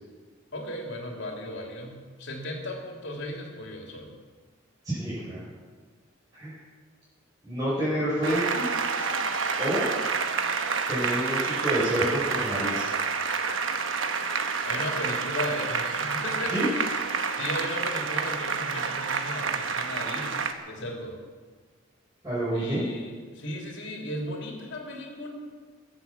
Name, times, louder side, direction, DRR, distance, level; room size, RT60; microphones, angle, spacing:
voice 1, 0.5-4.1 14.6-16.9 17.3-21.2 22.5-25.3, left 1 dB, 55° left, 0 dB, 3.2 m, -36 dB
voice 2, 4.8-5.4 6.3-6.5 7.4-8.6 9.6-9.9 10.9-12.9 16.4-16.7 22.2-22.8, right 1 dB, 15° right, -11 dB, 6.1 m, -28 dB
Applause, 8.2-20.5, right 5 dB, 65° right, 1.1 m, -29 dB
21.5 x 7.8 x 7.4 m, 1.5 s
head